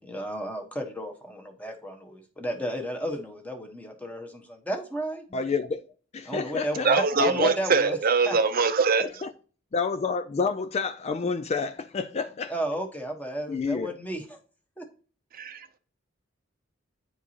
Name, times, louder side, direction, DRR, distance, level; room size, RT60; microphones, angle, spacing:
voice 1, 0.0-5.2 6.2-8.0 8.3-8.4 12.5-14.4 14.8-14.9, equal, 10° left, 1.2 m, -33 dB
voice 2, 5.3-5.8 6.1-7.5 9.0-9.3 9.7-12.5 13.5-13.9, left 5 dB, 35° left, 0.3 m, -29 dB
voice 3, 6.8-9.1 15.3-15.8, right 4 dB, 50° right, 0.6 m, -23 dB
9.6 x 4.7 x 2.9 m
head